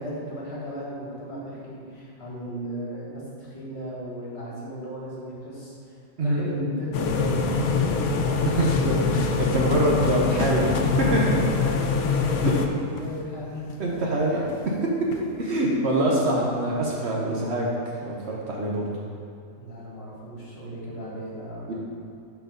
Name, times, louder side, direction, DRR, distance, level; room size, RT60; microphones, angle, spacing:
voice 1, 0.0-5.8 6.2-9.1 11.3-13.9 14.3-14.4 15.5-15.6 19.5-21.7, equal, 50° left, -7 dB, 2.0 m, -35 dB
sound 1, 6.9-12.7, left 5 dB, 90° left, 1.1 m, -24 dB
sound 2, 8.2-15.7, left 4 dB, 65° left, 0.5 m, -43 dB
voice 2, 8.4-9.0 9.4-11.4 12.4-12.5 13.8-14.4 15.1-17.7 18.0-18.9 21.7-21.8, right 1 dB, 55° right, -3 dB, 1.0 m, -25 dB
6.3 x 4.6 x 5.1 m, 2.5 s
omnidirectional pair, 1.5 m